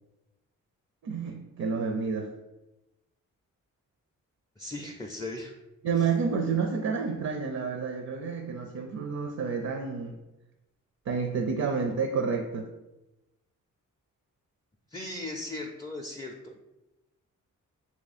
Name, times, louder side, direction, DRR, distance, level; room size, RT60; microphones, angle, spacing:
voice 1, 1.0-2.3 5.8-10.2 11.1-12.7, right 5 dB, 55° right, 5 dB, 0.5 m, -29 dB
voice 2, 4.6-5.5 6.0-6.1 14.9-16.5, left 2 dB, 10° left, 0 dB, 0.4 m, -38 dB
2.9 x 2.7 x 4.0 m, 0.99 s
cardioid pair, 65°, 32 cm